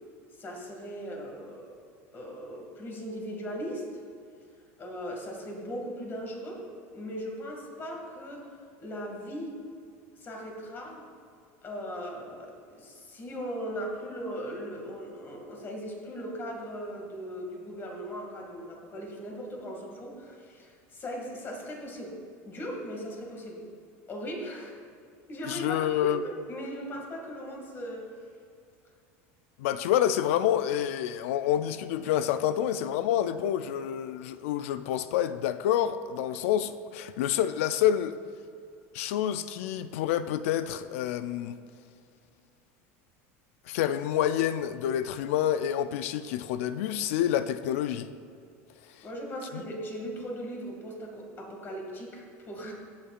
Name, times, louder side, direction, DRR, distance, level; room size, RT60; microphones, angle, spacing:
voice 1, 0.3-1.7 2.1-3.9 4.8-8.5 8.8-9.6 10.1-11.1 11.6-22.2 22.5-23.7 24.1-24.8 25.3-26.1 26.5-28.1 49.0-52.7, equal, 30° left, 0 dB, 2.1 m, -38 dB
voice 2, 25.5-26.2 29.6-38.2 38.9-41.5 43.7-48.1 49.5-49.6, left 11 dB, 80° left, 12 dB, 0.4 m, -28 dB
16.0 x 7.0 x 2.5 m, 2.3 s
supercardioid pair, 125°, 7 cm